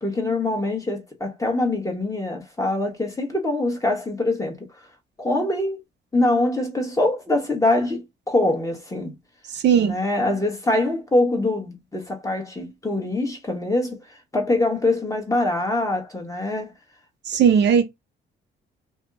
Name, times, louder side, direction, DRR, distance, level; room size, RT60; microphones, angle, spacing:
voice 1, 0.0-4.6 5.2-5.8 6.1-9.1 9.8-14.0 14.3-16.7, left 2 dB, 15° left, 1.2 m, -24 dB
voice 2, 9.5-10.0 17.3-17.8, right 7 dB, 60° right, 0.6 m, -17 dB
2.6 x 2.2 x 3.5 m
cardioid pair, 90°, 20 cm